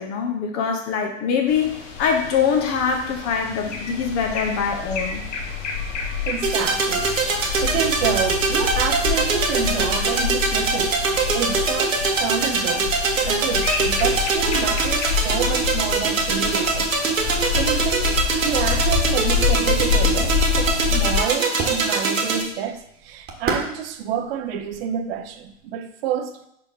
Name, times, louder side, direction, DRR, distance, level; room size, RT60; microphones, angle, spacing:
voice 1, 0.0-5.2, left 6 dB, 35° left, 1.1 m, -23 dB
sound 1, 1.5-21.2, left 6 dB, 65° left, 1.5 m, -27 dB
voice 2, 6.3-11.0 11.3-12.9 13.2-16.9 17.5-26.4, right 8 dB, 50° right, 0.8 m, -28 dB
sound 2, 6.4-22.4, right 3 dB, 85° right, 1.6 m, -23 dB
sound 3, 19.4-25.7, right 4 dB, 25° right, 1.4 m, -36 dB
5.2 x 4.8 x 5.4 m
hypercardioid pair, 115°, 39 cm